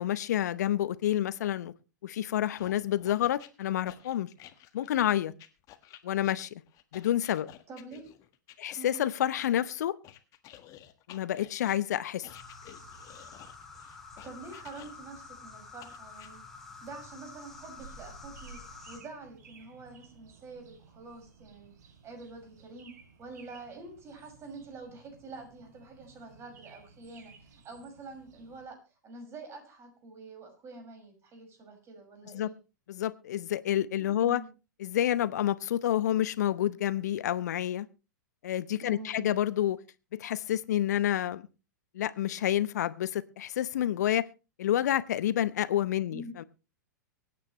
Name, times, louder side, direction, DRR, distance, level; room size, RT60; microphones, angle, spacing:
voice 1, 0.0-1.7 2.0-4.3 4.7-5.3 6.0-6.6 6.9-7.5 8.6-9.9 11.1-12.3 32.3-32.5 32.9-34.4 34.8-37.9 38.4-39.8 40.1-41.4 41.9-44.2 44.6-46.4, left 11 dB, 65° left, 0.9 m, -29 dB
sound 1, 2.6-9.5 10.0-15.2 15.8-16.3, left 12 dB, 35° left, 1.6 m, -53 dB
voice 2, 7.7-8.1 8.8-9.0 14.2-16.4 16.8-18.6 18.9-21.7 22.0-22.9 23.2-28.8 29.0-32.5 34.0-34.5 38.8-39.3 46.1-46.4, right 3 dB, 25° right, 6.0 m, -46 dB
sound 2, 12.3-19.0, left 4 dB, 5° left, 4.1 m, -49 dB
sound 3, 17.5-28.7, right 4 dB, 65° right, 3.8 m, -55 dB
24.5 x 9.6 x 3.1 m
figure-of-eight pair, 105°, 10 cm